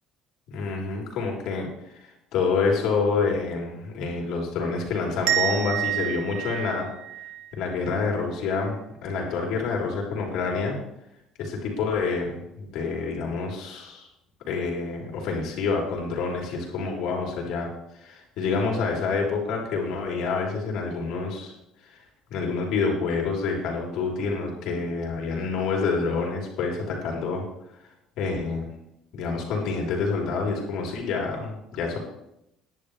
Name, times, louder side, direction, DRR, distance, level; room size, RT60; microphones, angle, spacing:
voice 1, 0.5-1.7 2.3-6.9 7.5-10.8 11.4-14.1 14.5-17.7 18.0-21.5 21.9-22.0 22.3-27.4 28.2-28.7 29.1-32.0, left 4 dB, 60° left, 0 dB, 3.8 m, -27 dB
sound 1, 5.3-8.0, right 12 dB, 85° right, 1.4 m, -29 dB
17.0 x 11.0 x 3.4 m, 0.82 s
cardioid pair, 170°, 0 cm